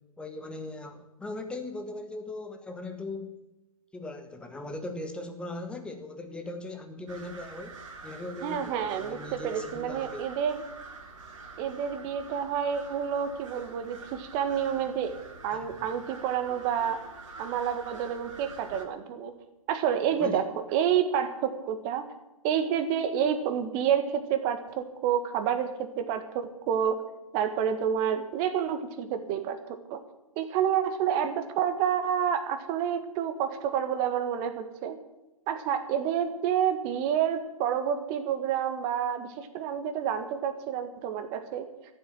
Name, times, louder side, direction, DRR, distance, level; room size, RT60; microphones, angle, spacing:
voice 1, 0.2-3.4 3.9-10.3 15.5-15.9 20.2-20.4, left 2 dB, 5° left, 6 dB, 1.3 m, -39 dB
sound 1, 7.1-18.8, right 3 dB, 55° right, 3.0 m, -46 dB
voice 2, 8.4-10.6 11.6-15.1 15.4-17.0 17.4-19.3 19.7-22.0 22.4-27.0 27.3-30.0 30.3-35.0 35.5-41.7, right 8 dB, 25° right, 8 dB, 1.6 m, -29 dB
14.0 x 7.9 x 10.0 m, 1.0 s
figure-of-eight pair, 130°, 19 cm